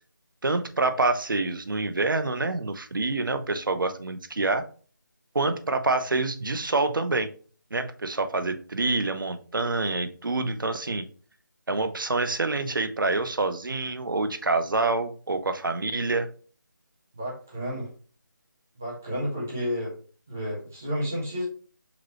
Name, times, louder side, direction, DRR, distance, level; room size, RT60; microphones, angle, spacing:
voice 1, 0.4-4.7 5.3-7.3 7.7-11.0 11.7-16.3, right 3 dB, 80° right, 9 dB, 0.7 m, -27 dB
voice 2, 17.1-17.9 18.8-19.9 20.3-21.4, equal, 10° right, -6 dB, 0.4 m, -31 dB
5.1 x 3.0 x 3.0 m, 0.41 s
figure-of-eight pair, 170°, 11 cm